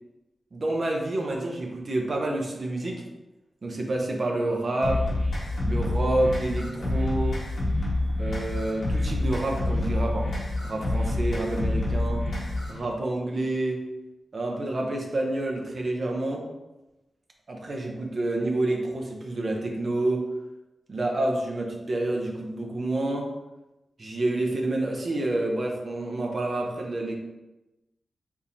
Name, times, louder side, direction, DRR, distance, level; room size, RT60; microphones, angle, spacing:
voice 1, 0.5-3.0 3.6-5.0 5.6-7.4 8.2-10.3 10.6-12.3 12.7-13.8 14.3-16.4 17.5-20.3 20.9-23.3 24.0-27.2, right 2 dB, 40° right, 0 dB, 0.6 m, -28 dB
sound 1, 4.8-12.8, left 2 dB, 70° left, 1.3 m, -27 dB
3.6 x 2.9 x 2.6 m, 1.0 s
wide cardioid pair, 155°, 0 cm